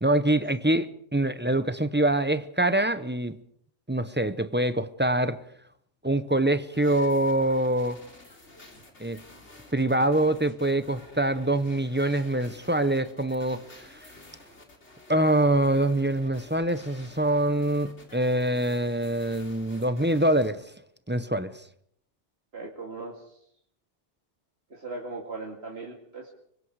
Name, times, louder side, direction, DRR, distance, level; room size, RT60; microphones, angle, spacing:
voice 1, 0.0-3.4 3.9-5.4 6.0-8.0 9.0-9.2 9.7-14.0 15.1-20.6 21.1-21.5, right 1 dB, 10° right, 0.8 m, -25 dB
sound 1, 6.7-20.5, left 2 dB, 80° left, 3.9 m, -51 dB
voice 2, 22.5-23.4 24.7-26.3, right 3 dB, 65° right, 2.6 m, -39 dB
25.0 x 23.0 x 4.8 m
omnidirectional pair, 1.2 m